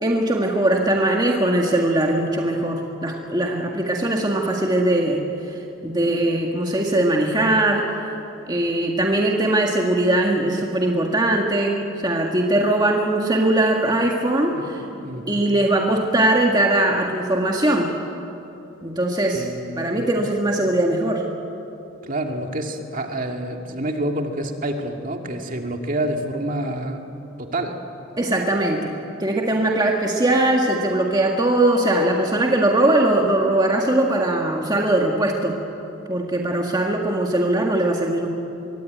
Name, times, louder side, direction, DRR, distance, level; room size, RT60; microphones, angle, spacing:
voice 1, 0.0-5.2 5.8-7.9 8.5-14.8 15.3-17.9 18.8-19.5 19.8-21.2 28.2-28.9 29.2-35.6 36.1-38.3, right 1 dB, 20° right, 0 dB, 1.7 m, -20 dB
voice 2, 14.5-15.4 19.3-20.3 22.0-27.0 27.4-27.8, right 1 dB, 40° right, 3 dB, 2.2 m, -28 dB
25.5 x 23.0 x 9.4 m, 2.9 s
head